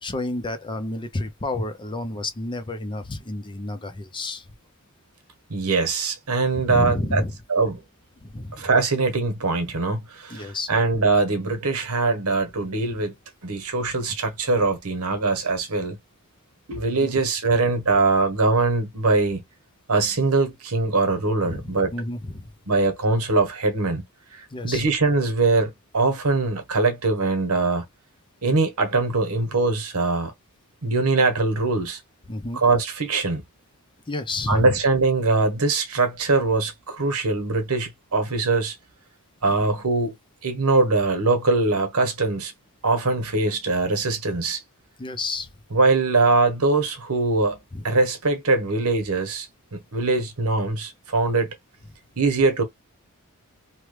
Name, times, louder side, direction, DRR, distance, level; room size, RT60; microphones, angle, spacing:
voice 1, 0.0-4.4 6.7-7.4 8.2-8.7 10.3-10.7 17.0-17.1 21.4-22.5 24.5-24.9 32.3-32.6 34.1-34.8 45.0-45.5 47.7-47.8, left 2 dB, 20° left, 0.6 m, -30 dB
voice 2, 5.5-7.2 7.5-7.8 8.6-13.1 13.4-16.0 16.7-19.4 19.9-21.9 22.7-24.0 24.3-27.9 28.4-30.3 30.8-32.0 32.5-33.4 34.5-38.7 39.4-40.1 40.4-42.5 42.8-44.6 45.7-47.6 47.8-51.5 52.2-52.6, right 3 dB, 80° right, 1.1 m, -22 dB
3.0 x 2.3 x 3.2 m
head